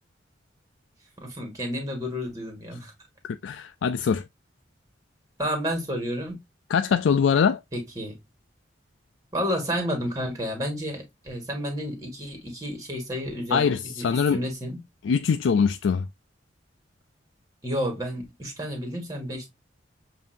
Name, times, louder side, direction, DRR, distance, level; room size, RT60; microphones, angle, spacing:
voice 1, 1.2-2.9 5.4-6.4 7.7-8.2 9.3-14.1 14.3-14.8 17.6-19.5, equal, 20° right, 1.8 m, -31 dB
voice 2, 3.3-4.2 6.7-7.6 13.5-14.4 15.0-16.1, left 6 dB, 90° left, 0.4 m, -23 dB
7.2 x 2.8 x 2.5 m
head